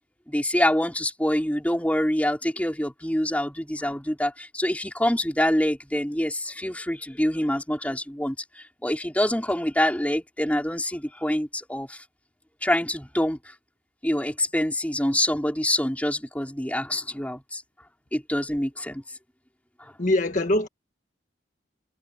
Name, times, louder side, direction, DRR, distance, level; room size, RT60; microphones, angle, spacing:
voice 1, 0.3-8.4 8.8-12.0 12.6-13.4 14.0-17.6 18.1-19.0, left 1 dB, 10° left, 5.3 m, -25 dB
voice 2, 20.0-20.7, left 1 dB, 45° left, 1.7 m, -22 dB
head